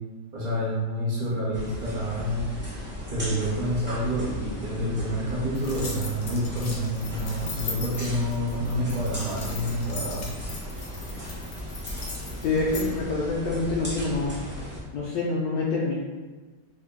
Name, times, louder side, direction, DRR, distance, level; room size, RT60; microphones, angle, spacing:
voice 1, 0.3-2.5 3.1-10.3, equal, 65° right, -6 dB, 1.3 m, -28 dB
sound 1, 1.5-14.8, left 1 dB, 15° right, 0.4 m, -36 dB
sound 2, 5.5-12.9, left 3 dB, 60° left, 0.8 m, -39 dB
voice 2, 12.4-14.3 14.9-15.9, left 3 dB, 85° left, -6 dB, 1.3 m, -26 dB
3.6 x 2.2 x 3.5 m, 1.3 s
omnidirectional pair, 1.8 m